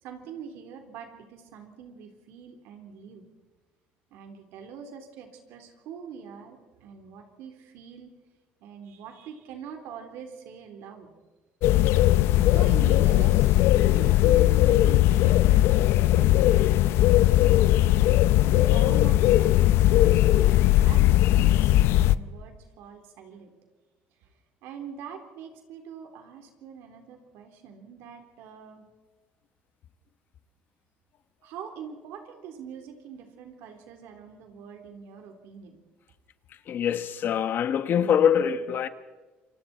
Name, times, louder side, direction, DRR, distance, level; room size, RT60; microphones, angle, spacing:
voice 1, 0.0-3.3 4.1-8.1 8.6-11.1 12.5-17.8 18.1-20.4 20.8-23.5 24.2-24.3 24.6-28.9 31.4-35.8, right 7 dB, 80° right, 3.6 m, -44 dB
sound 1, 11.6-22.2, left 14 dB, 75° left, 0.6 m, -19 dB
voice 2, 36.7-38.9, left 8 dB, 55° left, 1.2 m, -24 dB
27.5 x 24.5 x 4.4 m
cardioid pair, 110°, 4 cm